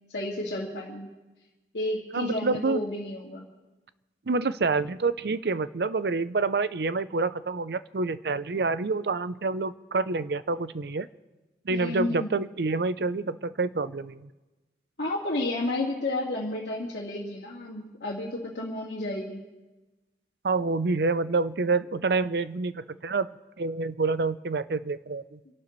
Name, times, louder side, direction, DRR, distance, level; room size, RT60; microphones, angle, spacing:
voice 1, 0.1-1.1 1.7-3.5 11.7-12.3 15.0-19.4, left 2 dB, 80° left, -5 dB, 2.0 m, -31 dB
voice 2, 2.1-2.8 4.3-11.1 11.6-14.3 20.4-23.3 23.6-25.4, right 3 dB, 65° right, 14 dB, 0.5 m, -27 dB
29.5 x 12.0 x 3.1 m, 1.1 s
head